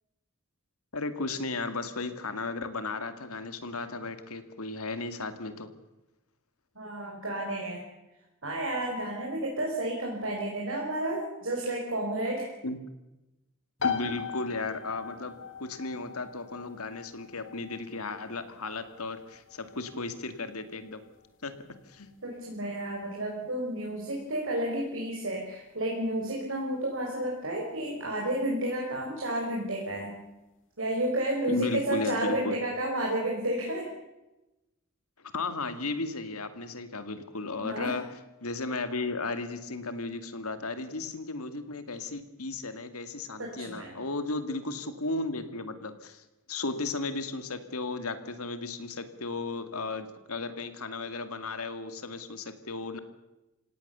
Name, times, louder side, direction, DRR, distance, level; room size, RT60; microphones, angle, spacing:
voice 1, 0.9-5.7 12.6-12.8 13.8-21.0 21.4-21.5 21.9-22.1 31.5-32.6 35.3-38.0 38.4-53.0, left 3 dB, 85° left, 10 dB, 2.3 m, -35 dB
voice 2, 6.7-7.8 8.4-12.5 22.2-30.1 30.8-33.9 37.6-38.0 43.4-44.0, right 1 dB, 65° right, -1 dB, 5.1 m, -31 dB
sound 1, 13.8-28.3, left 6 dB, 60° left, 2.7 m, -41 dB
28.0 x 17.5 x 7.0 m, 0.98 s
head